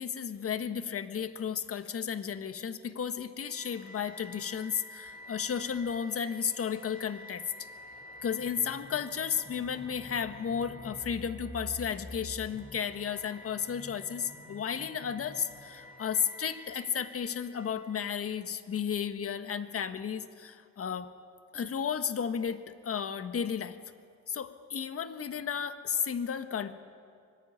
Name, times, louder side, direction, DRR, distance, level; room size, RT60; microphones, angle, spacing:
voice 1, 0.0-7.4 8.2-21.1 21.5-23.8 24.3-26.7, left 7 dB, 50° left, 9 dB, 1.5 m, -33 dB
sound 1, 3.4-18.5, left 1 dB, 30° left, 4.9 m, -48 dB
24.5 x 21.5 x 9.6 m, 2.2 s
cardioid pair, 90°, 30 cm